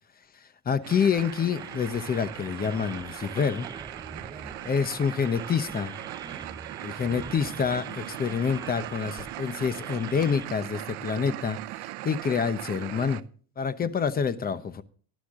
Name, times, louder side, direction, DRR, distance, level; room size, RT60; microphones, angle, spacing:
voice 1, 0.7-3.7 4.6-5.9 6.8-11.6 12.0-13.2 13.6-14.8, left 6 dB, 20° left, 0.9 m, -27 dB
sound 1, 0.8-13.2, right 18 dB, 65° right, 0.9 m, -39 dB
sound 2, 1.2-10.5, right 3 dB, 10° right, 0.7 m, -45 dB
18.0 x 11.5 x 3.7 m
cardioid pair, 155°, 43 cm